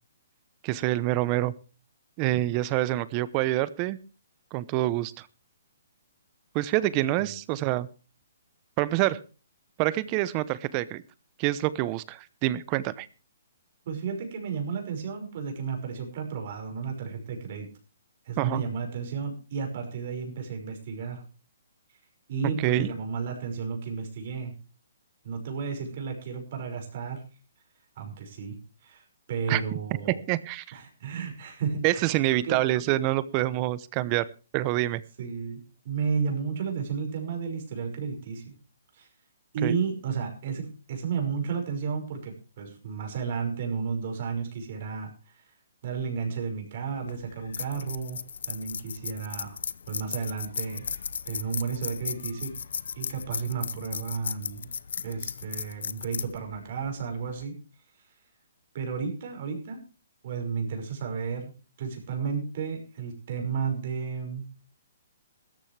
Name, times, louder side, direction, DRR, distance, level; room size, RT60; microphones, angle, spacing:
voice 1, 0.6-1.5 2.2-4.0 4.5-5.3 6.5-7.9 8.8-9.2 9.8-11.0 11.4-13.1 18.4-18.6 22.6-22.9 29.5-29.6 30.3-30.8 31.8-34.3 34.5-35.0 39.6-39.8, right 16 dB, 30° right, 18 dB, 0.8 m, -26 dB
voice 2, 13.9-17.7 18.2-21.2 22.3-24.5 25.2-27.2 28.0-28.6 28.8-30.2 30.7-32.6 35.2-38.5 38.9-39.1 39.5-45.5 45.8-48.2 48.5-49.6 49.9-50.9 51.3-52.6 53.0-54.7 55.0-57.6 58.7-59.8 60.2-61.5 61.8-64.5, right 6 dB, 50° right, 3 dB, 5.7 m, -33 dB
sound 1, 47.0-57.4, left 6 dB, 70° left, 0.7 m, -36 dB
16.5 x 14.0 x 3.4 m, 0.34 s
hypercardioid pair, 150°, 0 cm